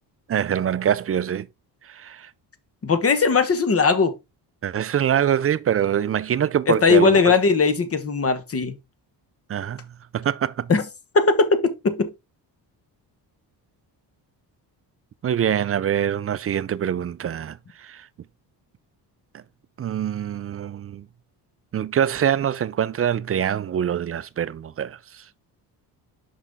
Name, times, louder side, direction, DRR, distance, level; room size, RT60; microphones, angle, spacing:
voice 1, 0.3-1.5 1.8-2.3 4.6-7.4 9.5-9.9 10.1-10.7 15.2-18.1 19.3-19.4 19.8-21.1 21.7-25.2, right 9 dB, 35° right, 0.4 m, -24 dB
voice 2, 2.8-4.1 6.8-8.7 10.7-10.8 11.1-12.1, left 4 dB, 35° left, 1.2 m, -19 dB
6.0 x 5.6 x 3.5 m
cardioid pair, 95°, 41 cm